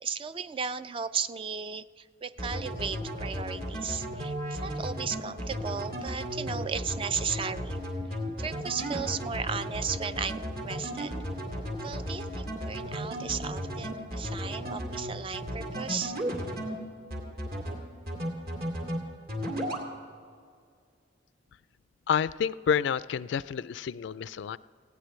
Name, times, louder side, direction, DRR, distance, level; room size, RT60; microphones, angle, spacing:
voice 1, 0.0-7.8 8.4-11.1 11.8-16.2, right 6 dB, 30° right, 13 dB, 0.3 m, -35 dB
sound 1, 2.4-16.7 17.1-17.8 18.1-19.0 19.3-19.8, equal, 55° right, 2.4 m, -34 dB
voice 2, 22.1-24.6, left 7 dB, 65° left, 17 dB, 0.3 m, -29 dB
19.5 x 16.0 x 3.2 m, 2.2 s
head